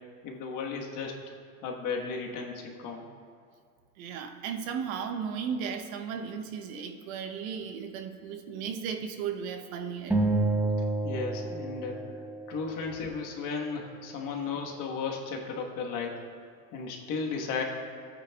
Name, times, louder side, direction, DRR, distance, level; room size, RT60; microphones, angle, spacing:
voice 1, 0.2-1.2 1.6-3.1 11.0-12.0 12.5-16.2 16.7-17.6, left 5 dB, 45° left, 1 dB, 1.3 m, -34 dB
voice 2, 4.0-10.2, right 7 dB, 65° right, 6 dB, 0.9 m, -35 dB
sound 1, 10.1-12.7, right 2 dB, 5° right, 0.5 m, -29 dB
13.5 x 8.9 x 2.3 m, 2.2 s
supercardioid pair, 120°, 45 cm